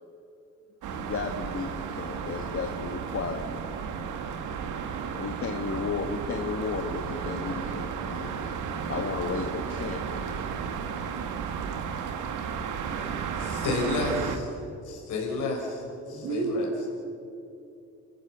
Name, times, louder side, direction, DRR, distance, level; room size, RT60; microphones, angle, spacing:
sound 1, 0.8-14.4, right 6 dB, 80° right, 2.0 m, -33 dB
voice 1, 0.9-3.6 5.1-8.5 8.9-10.0, left 5 dB, 45° left, 4 dB, 1.6 m, -34 dB
voice 2, 12.9-14.5 14.8-15.8 16.1-16.7, left 3 dB, 85° left, 0 dB, 4.6 m, -31 dB
voice 3, 16.1-16.9, right 3 dB, 60° right, -3 dB, 3.5 m, -30 dB
29.5 x 14.5 x 7.0 m, 2.7 s
cardioid pair, 90°, 30 cm